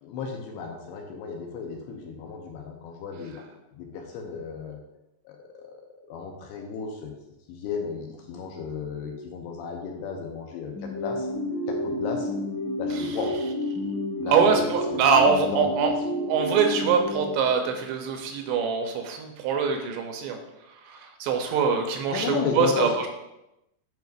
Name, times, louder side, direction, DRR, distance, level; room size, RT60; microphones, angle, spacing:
voice 1, 0.0-3.5 3.7-4.8 5.3-5.7 6.1-7.1 7.5-11.3 11.7-12.3 12.8-13.3 14.2-15.7 22.1-22.9, left 5 dB, 80° left, 2 dB, 2.6 m, -34 dB
sound 1, 10.7-17.9, left 1 dB, 50° left, 3.6 m, -30 dB
voice 2, 14.3-15.9 16.3-20.4 20.9-22.9, right 6 dB, 85° right, 4 dB, 2.8 m, -23 dB
9.3 x 4.8 x 2.5 m, 0.91 s
omnidirectional pair, 5.0 m